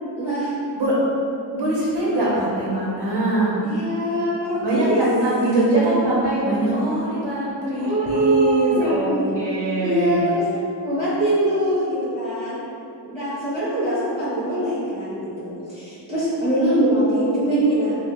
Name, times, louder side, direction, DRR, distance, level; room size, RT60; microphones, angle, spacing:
voice 1, 0.2-0.5 3.6-5.0 7.7-9.4 9.8-10.4 10.8-12.6 13.0-18.0, right 1 dB, 15° right, -11 dB, 0.6 m, -23 dB
voice 2, 1.5-3.5 4.6-10.2, right 1 dB, 80° right, -7 dB, 0.6 m, -22 dB
2.3 x 2.0 x 3.4 m, 2.6 s
wide cardioid pair, 75°, 41 cm